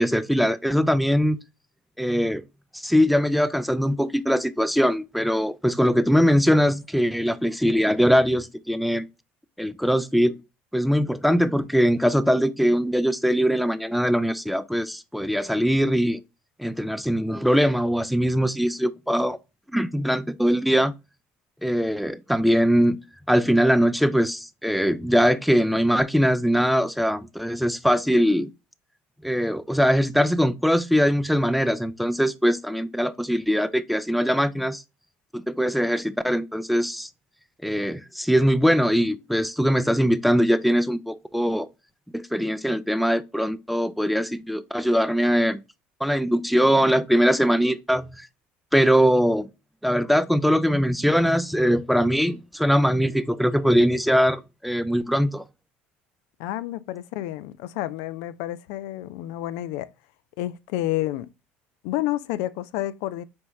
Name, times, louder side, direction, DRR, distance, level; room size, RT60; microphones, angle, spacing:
voice 1, 0.0-1.4 2.0-2.4 2.7-9.1 9.6-10.4 10.7-16.2 16.6-19.4 19.7-20.9 21.6-23.0 23.3-28.5 29.2-34.8 35.3-37.1 37.6-41.7 42.1-45.6 46.0-48.3 48.7-49.5 49.8-55.4, equal, ahead, 0.4 m, -21 dB
voice 2, 56.4-59.9 60.4-61.3 61.8-63.2, left 15 dB, 75° left, 0.4 m, -29 dB
4.3 x 3.2 x 3.1 m
supercardioid pair, 85°, 6 cm